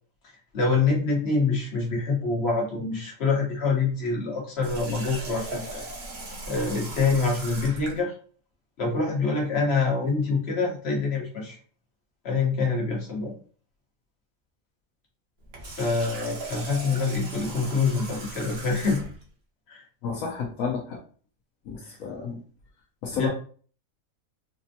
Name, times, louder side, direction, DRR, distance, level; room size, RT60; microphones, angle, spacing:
voice 1, 0.5-5.8 6.5-8.1 8.8-11.6 12.2-13.3 15.8-19.0 19.7-19.8 23.1-23.3, left 4 dB, 50° left, -2 dB, 1.3 m, -25 dB
Water tap faucet, 4.6-8.0 15.4-19.2, right 2 dB, 50° right, 1.0 m, -38 dB
voice 2, 20.0-21.0 21.7-22.4 23.0-23.3, left 6 dB, 75° left, -1 dB, 1.1 m, -30 dB
4.2 x 2.1 x 2.7 m, 0.43 s
omnidirectional pair, 1.4 m